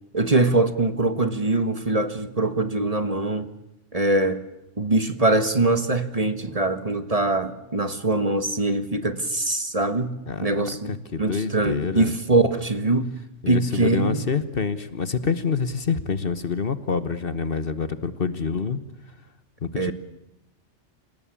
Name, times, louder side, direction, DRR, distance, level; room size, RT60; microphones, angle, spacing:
voice 1, 0.1-3.5 3.9-4.4 4.8-13.1 13.5-14.3 19.8-19.9, right 2 dB, 30° right, 10 dB, 1.5 m, -23 dB
voice 2, 10.9-12.1 13.4-18.8 19.6-19.9, left 5 dB, 50° left, 13 dB, 1.4 m, -26 dB
28.0 x 17.5 x 8.5 m, 0.91 s
omnidirectional pair, 1.3 m